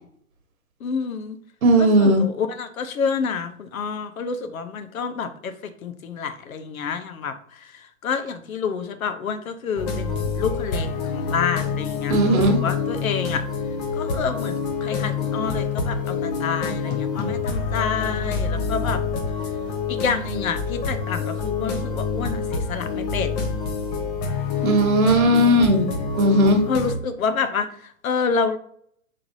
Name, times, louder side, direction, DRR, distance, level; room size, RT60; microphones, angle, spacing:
voice 1, 0.8-1.4 1.8-13.4 13.9-19.0 19.9-23.5 25.2-26.0 26.7-28.6, left 5 dB, 75° left, 10 dB, 0.9 m, -28 dB
voice 2, 1.6-2.2 12.1-12.6 24.6-25.8 26.2-26.6, right 1 dB, 85° right, 5 dB, 1.2 m, -17 dB
sound 1, 9.8-27.0, left 5 dB, 30° left, 0.8 m, -27 dB
5.7 x 3.3 x 2.7 m, 0.62 s
hypercardioid pair, 140°, 41 cm